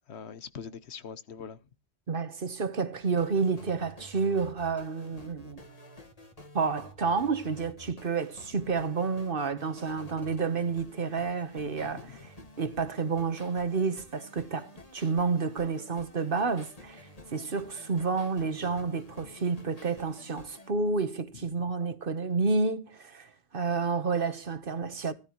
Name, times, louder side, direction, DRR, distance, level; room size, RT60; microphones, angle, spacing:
voice 1, 0.1-1.6 11.6-12.3 21.3-21.5, left 6 dB, 75° left, 1.1 m, -43 dB
voice 2, 2.1-5.6 6.5-12.2 12.6-25.1, right 4 dB, 55° right, 1.3 m, -30 dB
sound 1, 3.0-20.7, left 2 dB, 35° left, 2.0 m, -50 dB
14.0 x 13.0 x 3.0 m
omnidirectional pair, 1.1 m